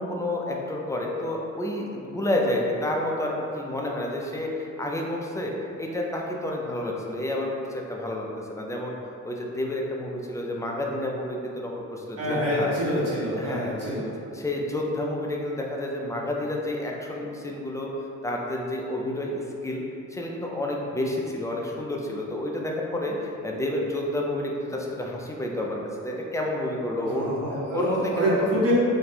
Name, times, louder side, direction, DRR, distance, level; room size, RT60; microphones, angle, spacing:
voice 1, 0.0-5.5 5.8-9.0 9.2-12.7 13.4-13.7 14.3-17.9 18.2-19.8 20.1-28.6, left 1 dB, 10° left, -1 dB, 0.4 m, -30 dB
voice 2, 12.2-14.1 27.1-28.7, equal, 55° right, -9 dB, 1.3 m, -26 dB
2.7 x 2.2 x 4.1 m, 2.7 s
cardioid pair, 90°, 30 cm